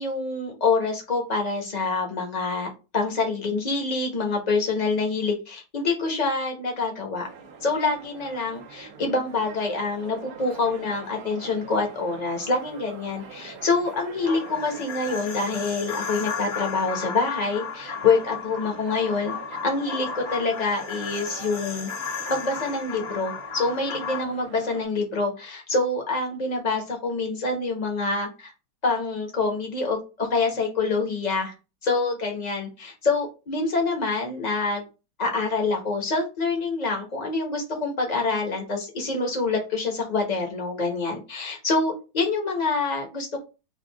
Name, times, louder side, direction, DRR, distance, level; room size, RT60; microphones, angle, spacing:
voice 1, 0.0-7.3 7.6-19.3 19.6-21.9 22.3-28.5 28.8-31.5 31.8-34.8 35.2-43.4, left 3 dB, 30° left, 1 dB, 1.0 m, -26 dB
sound 1, 7.2-24.8, right 5 dB, 60° right, 1.1 m, -43 dB
sound 2, 14.3-24.2, left 6 dB, 65° left, 1.6 m, -35 dB
5.0 x 2.4 x 3.4 m, 0.30 s
omnidirectional pair, 2.1 m